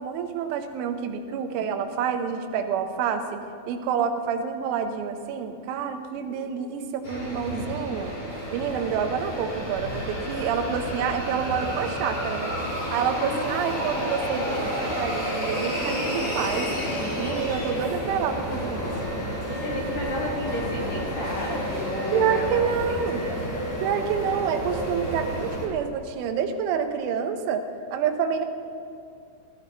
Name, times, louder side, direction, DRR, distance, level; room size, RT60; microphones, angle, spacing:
voice 1, 0.0-3.4 3.7-8.1 8.5-12.6 12.9-16.7 17.2-18.9 22.1-23.3 23.8-27.7 27.9-28.5, right 7 dB, 90° right, 6 dB, 3.4 m, -28 dB
voice 2, 6.2-6.6 13.2-14.2 19.5-22.6 22.9-23.5, left 2 dB, 55° left, -4 dB, 3.7 m, -33 dB
sound 1, 7.0-25.7, equal, 30° left, 3.2 m, -30 dB
16.5 x 13.5 x 4.1 m, 2.5 s
omnidirectional pair, 5.4 m